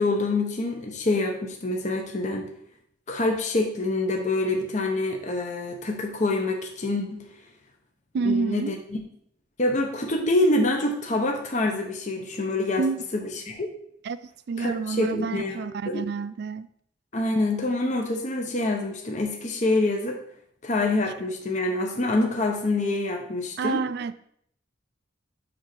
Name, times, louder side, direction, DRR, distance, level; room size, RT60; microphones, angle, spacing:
voice 1, 0.0-2.5 3.1-7.3 8.2-9.0 9.6-12.9 13.1-13.7 14.6-15.6 15.9-16.0 17.1-20.2 20.6-23.8, left 2 dB, 40° left, 0.8 m, -26 dB
voice 2, 8.1-8.8 12.8-13.0 14.0-14.2 14.5-16.7 23.6-24.1, right 4 dB, 55° right, 0.3 m, -28 dB
7.6 x 2.8 x 5.9 m
head